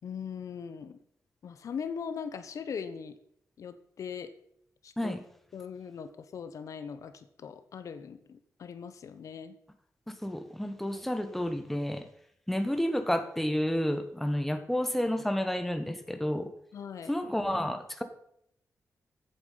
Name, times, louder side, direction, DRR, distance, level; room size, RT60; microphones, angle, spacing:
voice 1, 0.0-1.0 1.4-3.2 3.6-4.3 4.8-5.2 5.5-9.6 16.7-17.1, left 6 dB, 75° left, 11 dB, 1.1 m, -40 dB
voice 2, 10.1-12.1 12.5-16.5 17.1-18.0, equal, 5° left, 7 dB, 1.2 m, -30 dB
14.5 x 8.3 x 5.7 m, 0.72 s
wide cardioid pair, 155°, 6 cm